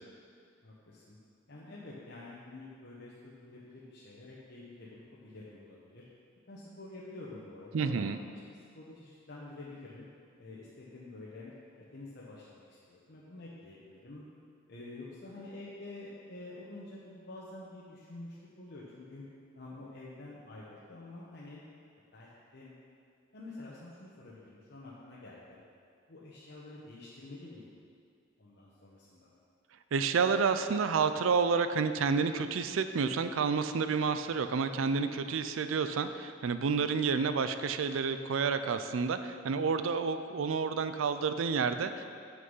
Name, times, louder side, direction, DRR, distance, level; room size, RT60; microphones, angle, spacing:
voice 1, 0.6-1.2 1.5-6.1 6.5-10.0 10.4-11.5 11.9-14.2 14.7-19.2 19.5-21.6 22.1-22.7 23.3-25.6 26.1-27.8 28.4-29.3, left 2 dB, 60° left, -7 dB, 1.1 m, -48 dB
voice 2, 7.7-8.2 29.9-42.0, right 5 dB, 90° right, 10 dB, 0.4 m, -30 dB
7.9 x 6.4 x 5.5 m, 2.2 s
head